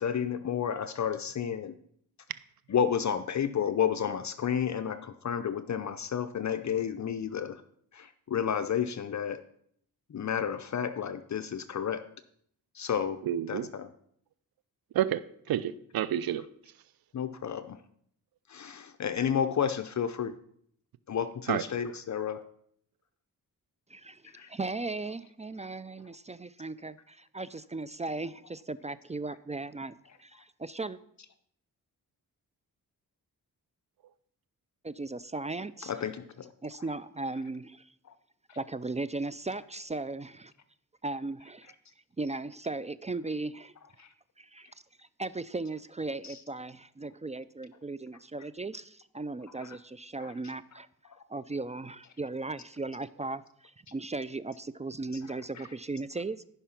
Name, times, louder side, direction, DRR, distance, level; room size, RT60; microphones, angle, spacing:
voice 1, 0.0-1.7 2.7-7.6 7.9-9.4 10.1-12.0 12.7-13.2 13.5-13.9 17.1-17.8 18.5-20.3 21.1-22.4 24.2-24.5 35.8-36.5 38.1-38.2 44.0-44.1 46.2-46.4 49.6-49.8 50.2-50.3 51.1-51.2 55.1-55.2 55.5-55.7, left 8 dB, 50° left, 10 dB, 0.7 m, -31 dB
voice 2, 13.3-13.7 14.9-16.4 21.5-21.6, right 11 dB, 75° right, 17 dB, 0.5 m, -29 dB
voice 3, 23.9-29.9 30.2-31.0 34.8-35.9 36.6-37.9 38.6-40.5 41.0-41.7 42.2-43.7 44.4-44.7 45.0-50.9 51.3-56.4, right 3 dB, 20° right, 16 dB, 0.4 m, -37 dB
13.5 x 5.6 x 5.9 m, 0.67 s
cardioid pair, 80°, 36 cm